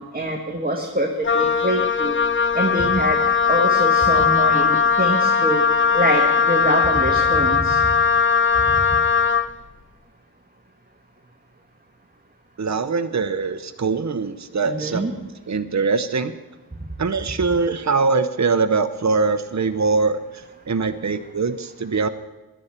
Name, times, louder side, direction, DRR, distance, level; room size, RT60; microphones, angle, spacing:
voice 1, 0.0-2.1 2.5-3.2 3.4-5.6 5.9-7.8 14.6-15.1, right 1 dB, 25° right, 1 dB, 1.5 m, -24 dB
Wind instrument woodwind instrument, 1.2-9.5, left 6 dB, 35° left, 0.5 m, -19 dB
voice 2, 12.6-16.4 17.0-20.2 20.7-22.1, right 4 dB, 50° right, 9 dB, 0.8 m, -22 dB
16.5 x 11.5 x 4.4 m, 1.1 s
wide cardioid pair, 50°, 37 cm